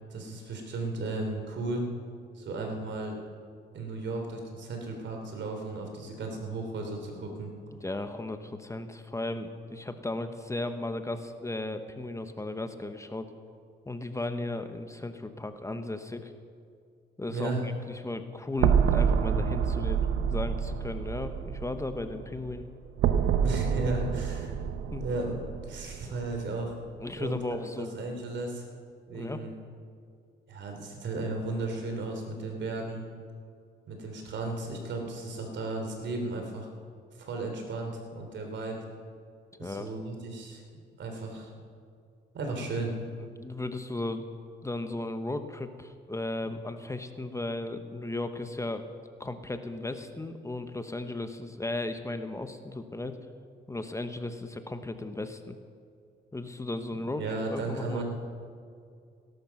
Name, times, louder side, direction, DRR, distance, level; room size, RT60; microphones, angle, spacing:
voice 1, 0.1-1.9 2.3-3.1 3.7-7.5 17.3-17.6 23.4-24.5 25.0-26.7 27.2-28.6 29.1-29.5 30.5-33.0 33.9-36.7 37.1-38.8 39.6-40.6 41.0-41.5 42.3-42.9 57.1-58.0, right 2 dB, 65° right, 3 dB, 3.4 m, -35 dB
voice 2, 7.7-13.3 13.9-16.3 17.2-22.6 24.1-24.2 24.9-25.1 27.0-27.9 29.1-29.4 39.6-39.9 43.4-44.3 44.6-48.9 49.2-53.2 53.7-55.6 56.3-57.2 57.5-58.0, left 2 dB, 15° left, 8 dB, 0.9 m, -35 dB
sound 1, 18.6-22.6 23.0-26.4, right 7 dB, 85° right, 0.9 m, -27 dB
17.5 x 12.0 x 6.0 m, 2.3 s
cardioid pair, 90°, 20 cm